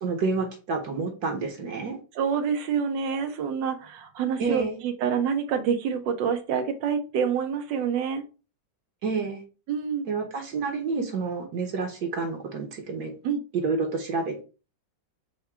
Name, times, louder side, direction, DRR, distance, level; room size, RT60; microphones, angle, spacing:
voice 1, 0.0-2.0 4.4-4.8 9.0-9.4 10.1-13.1 13.5-14.4, right 4 dB, 65° right, 3 dB, 1.3 m, -29 dB
voice 2, 2.2-8.2 9.7-10.1 13.2-13.4, right 7 dB, 85° right, 7 dB, 1.4 m, -27 dB
4.7 x 2.2 x 4.3 m, 0.33 s
omnidirectional pair, 1.9 m